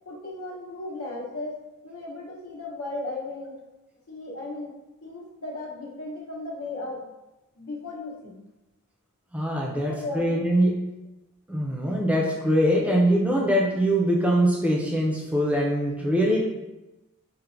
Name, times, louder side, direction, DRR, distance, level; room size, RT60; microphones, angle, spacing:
voice 1, 0.1-1.6 1.8-3.6 4.1-4.7 5.0-7.1 7.6-8.3 9.7-10.4, left 2 dB, 80° left, -3 dB, 0.8 m, -35 dB
voice 2, 9.3-10.8 11.5-16.5, equal, 5° right, -2 dB, 0.4 m, -23 dB
4.3 x 2.1 x 2.5 m, 1.0 s
head